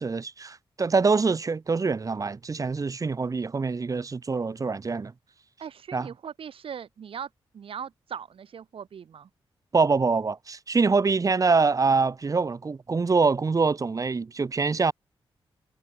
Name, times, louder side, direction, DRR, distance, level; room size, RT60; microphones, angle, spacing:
voice 1, 0.0-5.1 5.9-6.1 9.7-14.9, right 4 dB, 35° right, 0.8 m, -24 dB
voice 2, 5.6-9.3, right 7 dB, 75° right, 1.2 m, -40 dB
cardioid pair, 85°, 10 cm